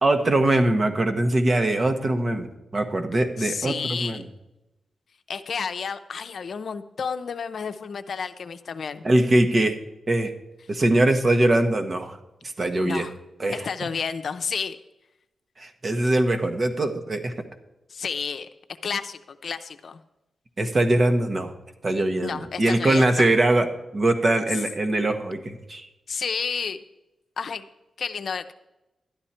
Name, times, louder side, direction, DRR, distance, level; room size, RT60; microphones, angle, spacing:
voice 1, 0.0-4.2 9.0-9.8 10.1-10.3 10.7-12.2 12.6-13.1 13.4-13.7 15.6-17.3 20.6-21.5 21.8-23.7 23.9-25.9, right 1 dB, 45° right, 6 dB, 1.2 m, -22 dB
voice 2, 3.4-4.2 5.3-9.0 12.8-13.1 13.5-14.8 17.9-18.5 18.8-20.0 22.2-23.3 26.1-26.8 27.4-27.7 28.0-28.5, left 6 dB, 70° left, 9 dB, 0.6 m, -31 dB
12.0 x 9.8 x 4.4 m, 0.96 s
cardioid pair, 55°, 0 cm